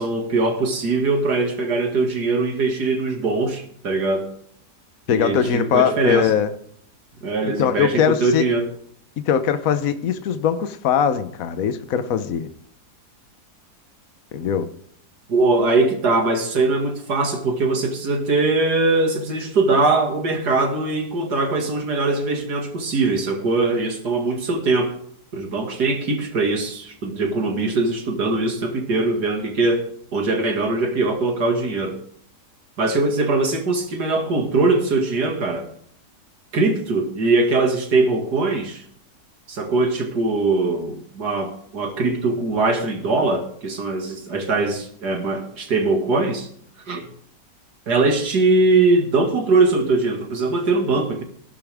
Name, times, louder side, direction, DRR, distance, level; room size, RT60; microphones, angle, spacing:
voice 1, 0.0-4.3 5.1-6.3 7.2-8.7 15.3-24.9 25.3-32.0 32.8-35.7 36.5-38.8 39.5-46.5 46.9-47.1 47.9-51.2, right 3 dB, 75° right, 2.7 m, -21 dB
voice 2, 5.1-6.5 7.6-8.5 9.3-12.5 14.3-14.7, left 8 dB, 60° left, 1.3 m, -21 dB
15.5 x 12.0 x 3.6 m
omnidirectional pair, 1.7 m